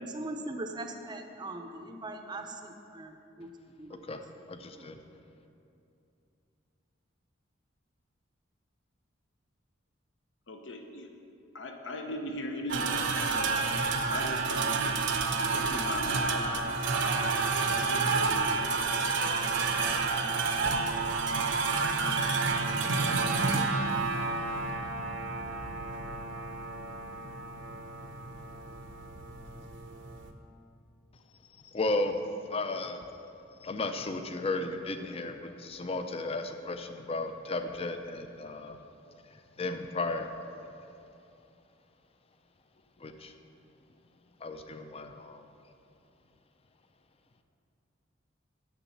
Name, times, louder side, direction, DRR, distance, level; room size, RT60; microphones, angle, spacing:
voice 1, 0.1-3.5 3.8-4.0 4.7-4.9, right 2 dB, 20° right, 5 dB, 0.6 m, -40 dB
voice 2, 4.1-5.0 31.7-32.2 32.5-33.0 33.6-38.8 39.6-40.3 43.0-43.3 44.4-45.4, left 2 dB, 30° left, 7 dB, 0.5 m, -34 dB
voice 3, 10.5-11.1 11.5-13.6 14.1-14.9 15.5-19.1, left 1 dB, 65° left, 4 dB, 0.9 m, -39 dB
sound 1, 12.7-30.3, right 4 dB, 65° right, 0.7 m, -30 dB
7.0 x 6.3 x 7.1 m, 2.7 s
head